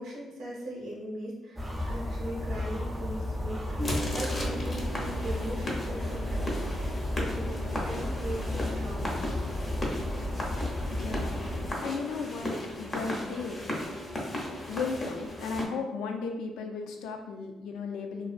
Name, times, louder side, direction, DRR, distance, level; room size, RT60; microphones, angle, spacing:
voice 1, 0.0-9.3, right 1 dB, 75° right, -3 dB, 0.7 m, -40 dB
sound 1, 1.6-11.7, left 1 dB, 15° right, 0.4 m, -33 dB
sound 2, 3.8-15.7, left 1 dB, 35° left, 0.6 m, -35 dB
voice 2, 10.9-12.5 12.8-13.6 14.7-18.3, left 4 dB, 90° left, 3 dB, 0.3 m, -35 dB
2.4 x 2.2 x 2.4 m, 1.0 s
cardioid pair, 90°, 0 cm